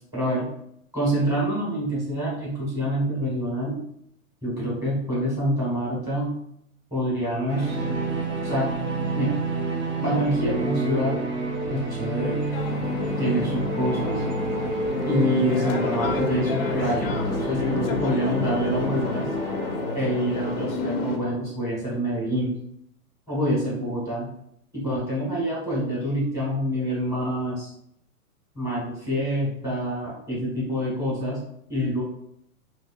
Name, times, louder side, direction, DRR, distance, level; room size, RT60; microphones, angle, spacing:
voice 1, 0.1-0.5 0.9-3.8 4.4-6.4 6.9-7.8 8.4-8.7 9.1-9.4 10.0-11.2 11.7-12.4 13.2-14.2 15.0-19.3 19.9-22.6 23.3-24.3 24.7-27.7 28.5-31.4 31.7-32.0, equal, 5° right, -7 dB, 1.4 m, -26 dB
sound 1, 7.5-20.7, right 2 dB, 35° right, 0.7 m, -29 dB
sound 2, 12.5-21.2, left 4 dB, 40° left, 0.4 m, -30 dB
3.1 x 2.7 x 2.4 m, 0.72 s
hypercardioid pair, 135°, 45 cm